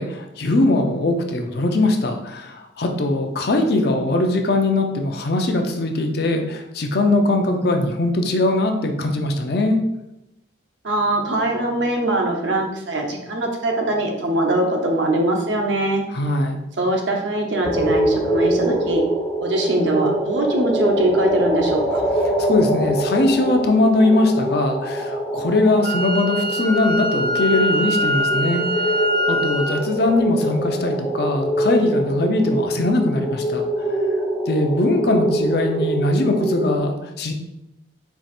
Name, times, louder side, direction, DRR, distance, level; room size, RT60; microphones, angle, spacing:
voice 1, 0.0-9.8 16.1-16.6 22.4-28.6 29.3-33.9 34.5-37.3, left 2 dB, 55° left, 4 dB, 0.5 m, -21 dB
voice 2, 10.8-16.0 16.8-19.0 19.4-22.0, right 1 dB, 70° right, 1 dB, 0.8 m, -22 dB
sound 1, 17.6-36.8, right 1 dB, 10° left, 0.5 m, -24 dB
Wind instrument woodwind instrument, 25.8-29.8, equal, 50° right, 0.4 m, -23 dB
4.6 x 2.5 x 4.2 m, 0.91 s
head